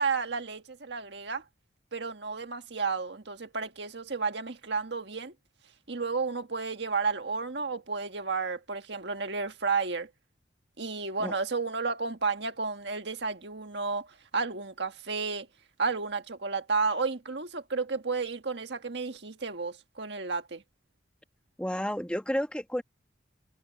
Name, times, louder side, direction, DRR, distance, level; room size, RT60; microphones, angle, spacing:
voice 1, 0.0-1.4 1.9-5.3 5.9-10.1 10.8-14.1 14.3-15.5 15.8-20.6, right 4 dB, 65° right, 1.7 m, -32 dB
voice 2, 21.6-22.8, equal, 5° left, 1.5 m, -31 dB
head